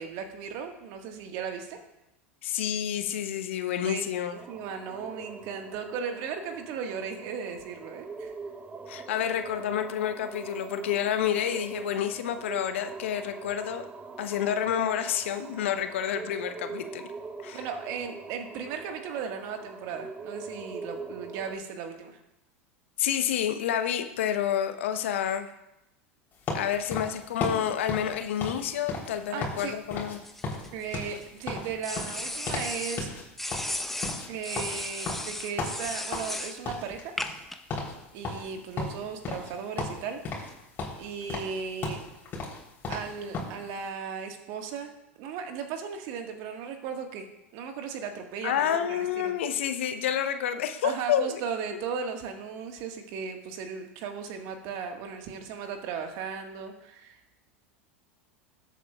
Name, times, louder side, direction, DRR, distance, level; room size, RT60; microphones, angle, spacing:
voice 1, 0.0-1.8 3.9-8.3 17.5-22.2 29.3-29.7 30.7-33.1 34.3-37.1 38.1-40.2 41.0-42.0 42.9-47.2 47.5-49.3 50.8-57.4, right 6 dB, 55° right, 4 dB, 1.7 m, -36 dB
voice 2, 2.4-4.3 8.9-13.8 14.2-17.0 17.4-17.6 23.0-25.5 26.5-30.2 48.4-51.4, left 9 dB, 70° left, 9 dB, 0.9 m, -29 dB
sound 1, 4.3-21.6, right 4 dB, 20° right, 1.0 m, -43 dB
sound 2, 26.5-29.6 29.9-30.2 30.4-32.7 33.0-33.2 33.5-36.4 36.6-37.4 37.7-37.9 38.2-39.5 39.8-40.5 40.8-43.6, left 3 dB, 30° left, 3.6 m, -35 dB
sound 3, 30.2-31.2 31.8-33.0 33.4-36.6 37.2-37.6, left 1 dB, 5° left, 1.0 m, -35 dB
20.5 x 8.4 x 2.4 m, 0.90 s
hypercardioid pair, 85°, 7 cm